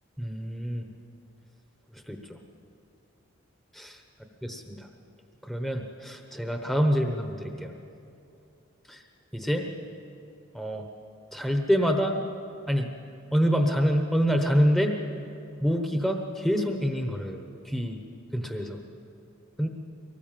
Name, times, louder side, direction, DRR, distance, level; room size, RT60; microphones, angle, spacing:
voice 1, 0.2-0.9 1.9-2.4 3.7-4.0 4.4-4.9 5.4-7.7 8.9-9.0 9.3-9.7 10.5-10.9 11.3-12.2 12.7-12.9 13.3-15.0 15.6-18.0 18.3-18.8 19.6-19.7, equal, ahead, 3 dB, 1.0 m, -26 dB
24.0 x 19.0 x 7.5 m, 2.8 s
head